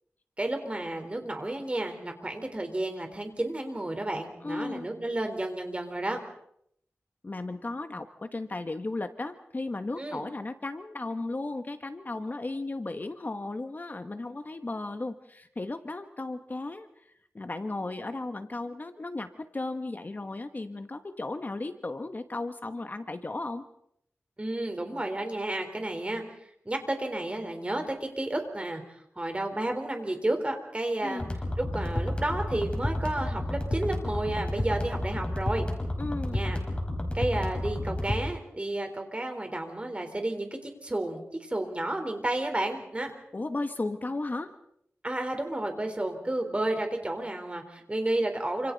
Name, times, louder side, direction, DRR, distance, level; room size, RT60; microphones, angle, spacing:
voice 1, 0.4-6.2 10.0-10.2 24.4-26.2 26.6-31.2 31.6-35.7 36.3-36.6 37.1-43.1 45.0-48.7, right 1 dB, 25° right, 5 dB, 4.1 m, -31 dB
voice 2, 4.4-4.9 7.2-16.9 17.3-23.6 31.0-31.3 36.0-36.4 43.3-44.5, left 2 dB, 40° left, 8 dB, 1.3 m, -35 dB
sound 1, 31.2-38.2, left 1 dB, 25° left, 5.2 m, -31 dB
28.5 x 27.0 x 4.1 m, 0.71 s
wide cardioid pair, 85°, 5 cm